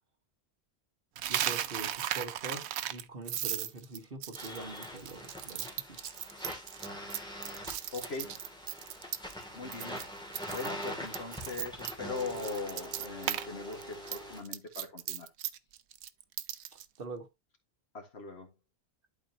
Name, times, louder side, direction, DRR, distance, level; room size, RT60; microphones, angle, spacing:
Coin (dropping), 1.2-9.4 9.7-10.0 10.3-13.5 13.7-16.9, right 11 dB, 80° right, 0.9 m, -36 dB
voice 1, 1.3-6.0 17.0-17.3, right 3 dB, 55° right, 1.6 m, -44 dB
sound 1, 4.3-14.4, equal, 5° left, 2.4 m, -43 dB
voice 2, 7.9-8.4 9.5-10.0 10.5-15.3 17.9-18.5, left 4 dB, 70° left, 2.0 m, -40 dB
11.5 x 4.3 x 2.8 m
omnidirectional pair, 1.1 m